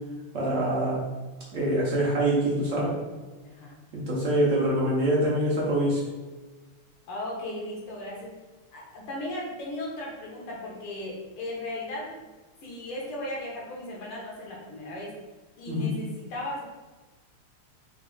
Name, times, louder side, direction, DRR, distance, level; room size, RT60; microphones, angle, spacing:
voice 1, 0.3-1.0 1.5-3.0 3.9-6.0 15.7-15.9, right 1 dB, 70° right, -5 dB, 0.7 m, -25 dB
voice 2, 3.4-3.8 5.4-5.5 7.1-8.3 8.7-12.3 12.6-15.2 15.6-16.6, left 1 dB, 85° left, -3 dB, 2.0 m, -36 dB
4.7 x 2.3 x 3.6 m, 1.2 s
omnidirectional pair, 2.4 m